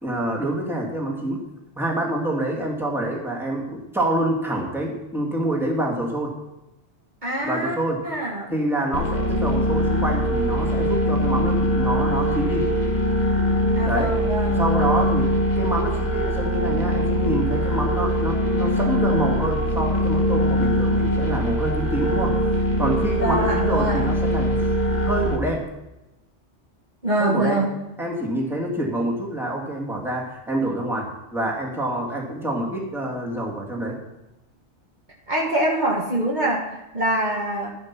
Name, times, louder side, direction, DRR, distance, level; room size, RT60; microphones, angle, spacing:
voice 1, 0.0-1.4 1.8-6.4 7.4-8.1 8.5-12.7 13.8-14.1 14.4-15.3 15.6-22.4 22.8-24.6 25.0-25.6 27.2-27.6 28.0-34.0, right 1 dB, ahead, -3 dB, 2.1 m, -26 dB
voice 2, 7.2-7.8 8.0-8.5 13.7-14.6 23.1-24.0 27.0-27.7 35.3-37.7, right 1 dB, 40° right, -3 dB, 1.7 m, -24 dB
sound 1, 8.9-25.4, equal, 40° left, 1.3 m, -22 dB
11.5 x 7.7 x 6.0 m, 0.97 s
omnidirectional pair, 1.2 m